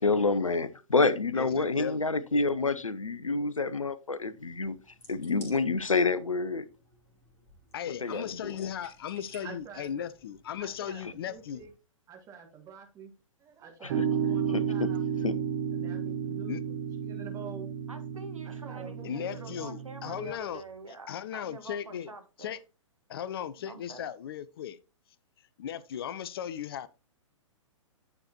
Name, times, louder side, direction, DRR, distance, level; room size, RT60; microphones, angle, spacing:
voice 1, 0.0-4.8 5.1-6.7 8.0-8.7 13.8-14.1 14.5-14.9 15.2-15.3, left 3 dB, 80° left, 0.7 m, -28 dB
voice 2, 1.3-2.0 7.7-11.6 16.5-16.6 19.0-20.6 21.1-22.1 22.4-22.6 23.1-24.8 25.6-26.9, left 9 dB, 45° left, 0.6 m, -37 dB
sound 1, 4.2-11.7, left 1 dB, 15° left, 2.9 m, -57 dB
voice 3, 9.4-10.1 10.6-11.7 12.1-13.1 13.4-15.0 15.7-16.6 17.0-17.7 18.4-19.5, right 6 dB, 20° right, 1.6 m, -47 dB
sound 2, 13.9-20.3, right 7 dB, 40° right, 1.6 m, -32 dB
voice 4, 17.9-22.5 23.6-24.1, right 3 dB, 80° right, 1.7 m, -46 dB
9.6 x 6.6 x 2.9 m
figure-of-eight pair, 115°, 17 cm